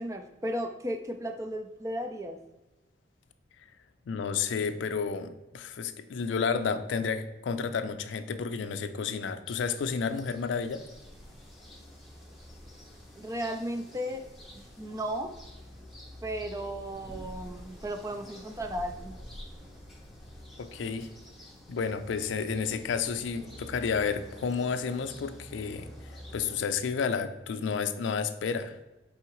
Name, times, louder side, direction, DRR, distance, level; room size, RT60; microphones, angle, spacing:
voice 1, 0.0-2.4 13.2-14.2 14.5-15.3 16.2-19.1, equal, 15° right, 6 dB, 0.3 m, -35 dB
voice 2, 4.1-10.8 20.6-21.1 21.7-25.9 26.3-28.8, left 5 dB, 85° left, 10 dB, 0.4 m, -31 dB
sound 1, 9.5-26.6, left 1 dB, ahead, 0.7 m, -48 dB
4.6 x 3.5 x 3.0 m, 1.0 s
head